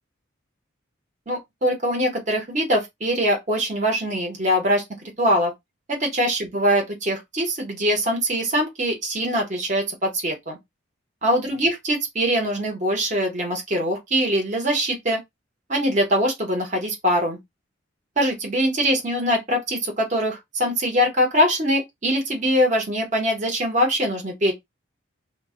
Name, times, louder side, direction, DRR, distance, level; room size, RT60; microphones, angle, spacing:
voice 1, 1.3-4.8 5.2-5.5 5.9-10.6 11.2-15.2 15.7-17.4 18.2-24.5, equal, 35° right, 0.9 m, -23 dB
2.3 x 2.1 x 3.5 m
head